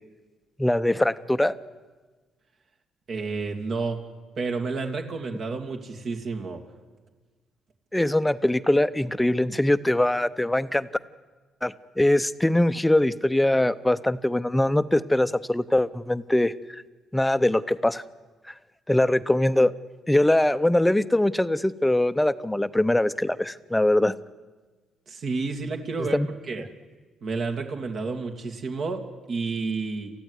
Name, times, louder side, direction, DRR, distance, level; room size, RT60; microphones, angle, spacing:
voice 1, 0.6-1.5 7.9-10.9 11.6-16.8 17.1-18.0 18.9-19.7 20.1-24.1 26.0-26.3, left 1 dB, 10° left, 13 dB, 0.8 m, -22 dB
voice 2, 3.1-4.0 4.4-6.6 25.1-26.7 27.2-30.1, right 4 dB, 60° right, 4 dB, 2.6 m, -30 dB
28.0 x 14.5 x 9.9 m, 1.3 s
cardioid pair, 90°, 0 cm